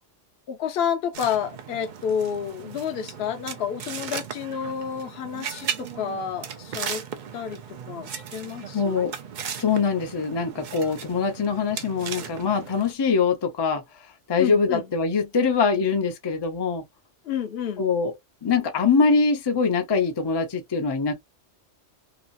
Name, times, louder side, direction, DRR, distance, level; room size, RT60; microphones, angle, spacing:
voice 1, 0.5-7.0 7.3-7.6 7.9-9.1 14.4-14.9 17.2-17.8, left 8 dB, 60° left, 0.9 m, -30 dB
sound 1, 1.1-12.9, right 7 dB, 55° right, 0.5 m, -37 dB
voice 2, 8.7-9.1 9.6-13.8 14.3-16.8 17.8-18.1 18.4-21.1, left 5 dB, 30° left, 0.5 m, -23 dB
2.9 x 2.4 x 2.5 m
omnidirectional pair, 1.2 m